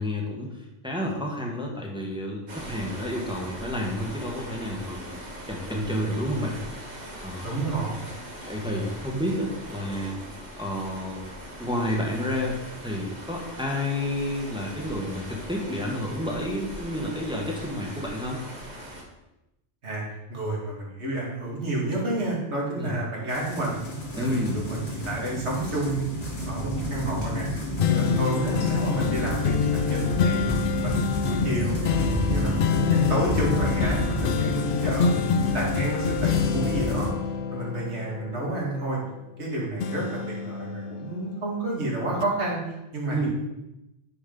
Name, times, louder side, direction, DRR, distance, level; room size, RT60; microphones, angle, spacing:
voice 1, 0.0-5.2 5.5-6.6 7.2-7.6 8.5-10.2 10.6-11.2 11.6-12.6 12.8-18.4 22.7-22.9 24.2-24.6 43.1-43.3, left 1 dB, 5° right, -1 dB, 1.3 m, -30 dB
sound 1, 2.5-19.0, equal, 40° right, 1.5 m, -41 dB
voice 2, 7.4-8.0 19.8-20.0 20.3-23.8 24.1-26.1 26.5-27.5 27.9-30.5 30.8-37.1 37.5-39.0 39.4-42.6 42.9-43.2, right 2 dB, 70° right, -3 dB, 2.4 m, -30 dB
sound 2, 23.3-37.1, equal, 45° left, 1.9 m, -31 dB
sound 3, 27.8-39.4 39.8-41.7 42.2-42.3, left 6 dB, 60° left, 0.6 m, -26 dB
9.7 x 5.3 x 3.9 m, 0.93 s
omnidirectional pair, 1.2 m